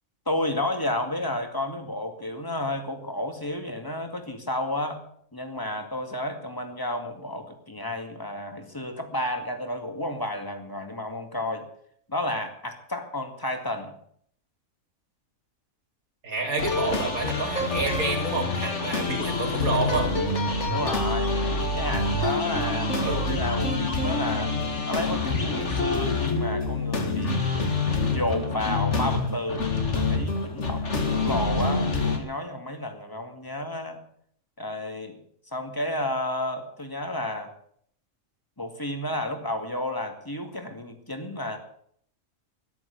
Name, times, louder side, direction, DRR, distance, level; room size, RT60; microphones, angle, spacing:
voice 1, 0.3-5.0 5.3-11.7 12.1-13.9 20.7-21.4 21.7-24.5 24.9-27.5 28.1-34.0 34.6-35.2 35.5-37.5 38.6-41.6, left 1 dB, 15° left, 5 dB, 2.2 m, -31 dB
voice 2, 16.2-20.1 23.0-23.3, right 3 dB, 90° right, 1 dB, 3.7 m, -29 dB
sound 1, 16.6-32.2, left 3 dB, 55° left, 2.5 m, -26 dB
13.5 x 11.0 x 8.2 m, 0.64 s
omnidirectional pair, 1.5 m